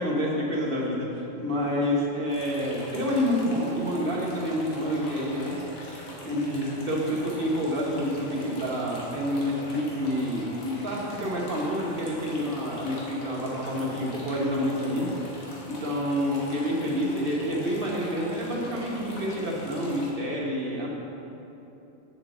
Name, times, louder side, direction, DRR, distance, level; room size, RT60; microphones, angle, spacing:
voice 1, 0.0-5.6 6.2-15.1 15.7-20.9, equal, 45° right, -3 dB, 1.5 m, -28 dB
sound 1, 2.3-20.1, left 1 dB, 85° left, 1.8 m, -43 dB
7.2 x 5.3 x 7.2 m, 2.9 s
omnidirectional pair, 1.4 m